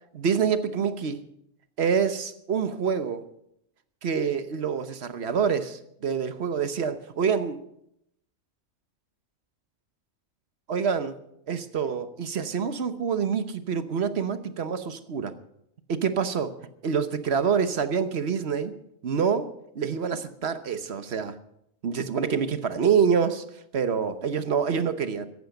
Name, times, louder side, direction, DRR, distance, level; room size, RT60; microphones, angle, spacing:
voice 1, 0.1-1.2 1.8-3.3 4.0-7.6 10.7-11.2 11.5-15.3 15.9-16.5 16.8-18.7 19.0-21.4 21.8-23.4 23.7-25.3, right 6 dB, 55° right, 11 dB, 1.2 m, -26 dB
15.0 x 11.0 x 6.7 m, 0.77 s
omnidirectional pair, 1.4 m